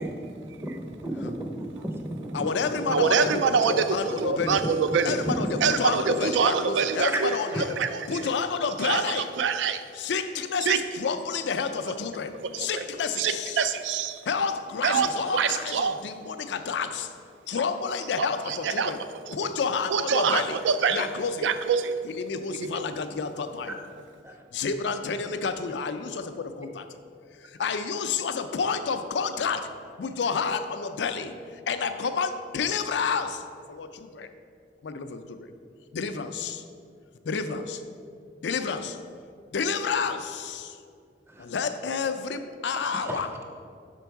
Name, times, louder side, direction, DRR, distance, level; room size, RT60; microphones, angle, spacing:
voice 1, 0.0-3.3 3.6-3.7 4.4-4.8 5.1-5.6 7.1-7.2 7.5-7.6 23.7-23.8 24.2-24.4 41.3-41.5 42.8-43.3, right 1 dB, 15° right, 3 dB, 0.5 m, -34 dB
voice 2, 2.3-4.6 5.0-7.8 8.1-9.3 10.0-13.6 14.3-17.1 17.5-19.0 19.3-20.6 20.9-21.5 22.0-23.8 24.5-26.9 27.4-33.4 33.7-34.3 34.8-35.5 35.9-36.6 37.2-37.8 38.4-39.0 39.5-40.8 41.4-43.3, left 5 dB, 75° left, 9 dB, 0.4 m, -30 dB
voice 3, 2.9-8.3 8.6-9.8 10.6-10.9 11.8-12.9 13.1-14.3 14.8-16.0 18.2-19.5 19.9-21.1 21.4-22.0 22.5-22.8, right 6 dB, 85° right, 10 dB, 0.4 m, -26 dB
6.0 x 4.5 x 4.6 m, 2.3 s
head